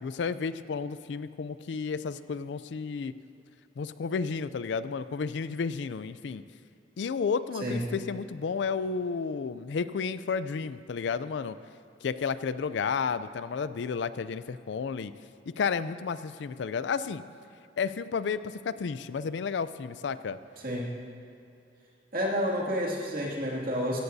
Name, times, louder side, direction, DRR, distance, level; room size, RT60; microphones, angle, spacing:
voice 1, 0.0-3.1 3.8-6.4 7.0-11.6 12.0-15.1 15.5-17.2 17.8-20.4, left 5 dB, 70° left, 14 dB, 0.4 m, -32 dB
voice 2, 22.1-24.0, equal, 50° right, -3 dB, 2.3 m, -30 dB
16.0 x 14.5 x 2.7 m, 2.5 s
head